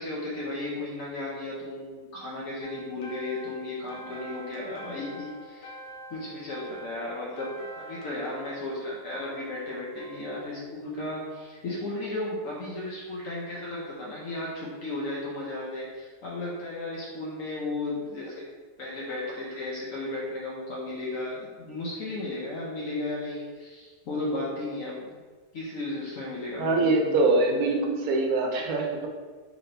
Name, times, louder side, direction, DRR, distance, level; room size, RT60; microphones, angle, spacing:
voice 1, 0.0-5.7 6.1-7.5 7.8-18.4 18.8-25.2 25.5-27.1, left 2 dB, 65° left, -5 dB, 1.1 m, -34 dB
sound 1, 2.6-10.4, right 1 dB, 50° left, 0.7 m, -45 dB
voice 2, 26.6-29.1, right 2 dB, 85° right, 2 dB, 1.1 m, -24 dB
4.6 x 2.9 x 2.6 m, 1.5 s
omnidirectional pair, 1.5 m